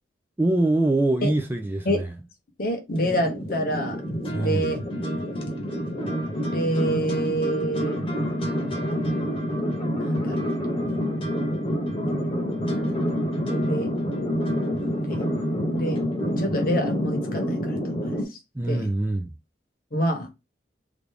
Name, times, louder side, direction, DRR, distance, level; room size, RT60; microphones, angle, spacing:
voice 1, 0.4-2.1 4.3-4.7 18.6-19.3, right 2 dB, 10° right, 0.3 m, -24 dB
voice 2, 2.6-4.0 4.3-4.8 6.4-8.0 10.0-10.5 13.5-13.9 15.1-15.2 15.7-16.0 16.4-18.2 18.7-18.9 19.9-20.3, equal, 50° left, 0.9 m, -27 dB
sound 1, 2.9-18.2, equal, 30° left, 0.9 m, -27 dB
3.3 x 2.5 x 3.4 m
head